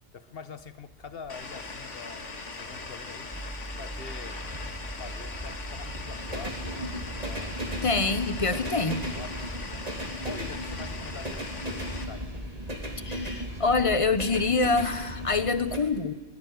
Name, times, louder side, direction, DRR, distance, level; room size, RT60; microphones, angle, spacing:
voice 1, 0.1-3.3 3.8-4.4 5.0-7.6 8.4-9.9 10.2-12.3, left 5 dB, 50° left, 11 dB, 1.4 m, -45 dB
sound 1, 0.6-15.8, equal, 30° right, 2.8 m, -37 dB
sound 2, 1.3-12.0, left 3 dB, 75° left, 2.1 m, -40 dB
sound 3, 3.3-9.4, right 1 dB, 10° right, 0.4 m, -43 dB
voice 2, 7.8-9.0 13.0-16.2, left 4 dB, 30° left, 13 dB, 0.9 m, -26 dB
22.5 x 18.5 x 9.5 m, 1.3 s
omnidirectional pair, 1.3 m